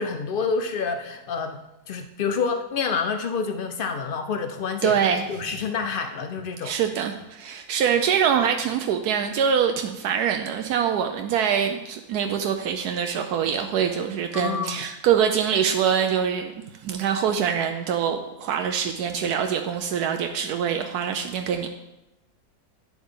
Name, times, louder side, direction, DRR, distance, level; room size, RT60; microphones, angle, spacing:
voice 1, 0.0-1.6 1.9-5.0 5.3-6.7 14.3-14.8, left 5 dB, 85° left, 7 dB, 0.4 m, -28 dB
voice 2, 4.8-5.2 6.6-16.5 16.8-21.7, right 8 dB, 80° right, 5 dB, 1.1 m, -24 dB
9.9 x 7.1 x 3.7 m, 0.95 s
omnidirectional pair, 1.7 m